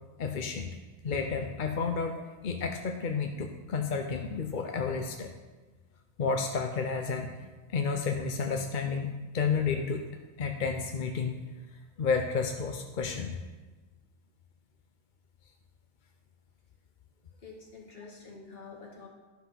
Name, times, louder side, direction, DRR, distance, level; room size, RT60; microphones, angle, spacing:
voice 1, 0.2-0.7 1.0-5.3 6.2-7.3 7.7-10.1 10.4-11.4 12.0-13.4, left 5 dB, 55° left, 4 dB, 0.8 m, -31 dB
voice 2, 17.4-19.1, left 4 dB, 70° left, -3 dB, 2.2 m, -47 dB
11.5 x 5.8 x 5.8 m, 1.2 s
omnidirectional pair, 1.0 m